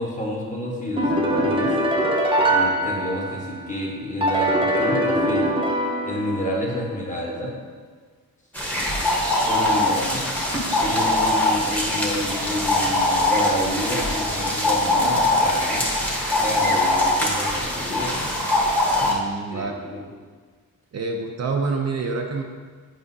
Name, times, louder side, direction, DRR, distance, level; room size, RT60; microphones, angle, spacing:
voice 1, 0.0-1.7 2.4-5.5 6.0-7.5 9.4-10.2 10.8-15.8 16.4-18.2 19.5-20.0, left 1 dB, 20° left, -3 dB, 1.2 m, -29 dB
sound 1, 1.0-3.6 4.2-6.7, right 1 dB, 15° right, 0.7 m, -22 dB
sound 2, 8.5-19.1, left 1 dB, 5° left, 1.1 m, -22 dB
voice 2, 19.0-19.7 20.9-22.4, right 4 dB, 45° right, 2 dB, 0.5 m, -27 dB
7.8 x 4.9 x 2.7 m, 1.6 s
wide cardioid pair, 120°, 35 cm